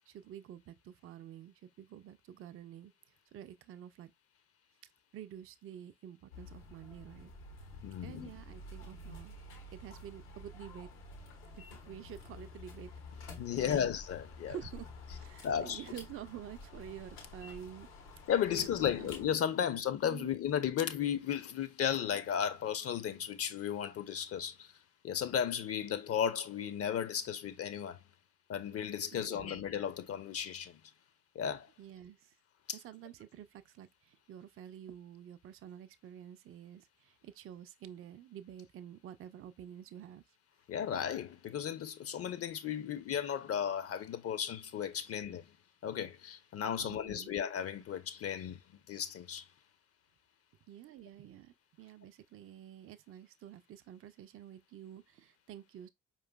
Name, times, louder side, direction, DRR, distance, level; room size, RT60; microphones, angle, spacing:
voice 1, 0.1-2.9 3.3-4.1 5.1-7.3 8.0-9.4 9.7-10.9 11.5-13.9 14.5-17.9 18.4-19.4 20.0-20.3 29.1-29.7 31.8-32.3 32.7-40.2 46.8-47.3 50.7-55.9, right 10 dB, 40° right, 0.5 m, -49 dB
sound 1, 6.3-19.3, left 3 dB, 80° left, 1.0 m, -50 dB
voice 2, 7.8-8.3 13.4-14.7 15.1-15.9 18.3-24.7 25.0-28.0 28.5-30.8 31.3-31.7 32.7-32.8 40.7-45.5 45.8-48.6 48.9-49.5, left 8 dB, 45° left, 0.6 m, -35 dB
4.7 x 3.0 x 2.2 m
hypercardioid pair, 45°, 35 cm